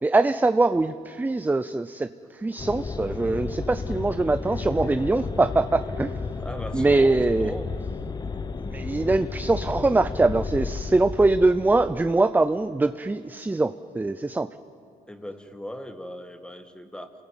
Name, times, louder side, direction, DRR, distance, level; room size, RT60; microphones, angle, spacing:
voice 1, 0.0-6.1 6.7-7.5 8.7-14.5, right 2 dB, 10° right, 11 dB, 0.6 m, -23 dB
sound 1, 2.6-12.2, left 4 dB, 25° left, 1.1 m, -33 dB
voice 2, 6.4-7.7 15.1-17.1, left 1 dB, 5° left, 7 dB, 2.0 m, -38 dB
28.0 x 21.0 x 9.0 m, 2.6 s
cardioid pair, 110°, 17 cm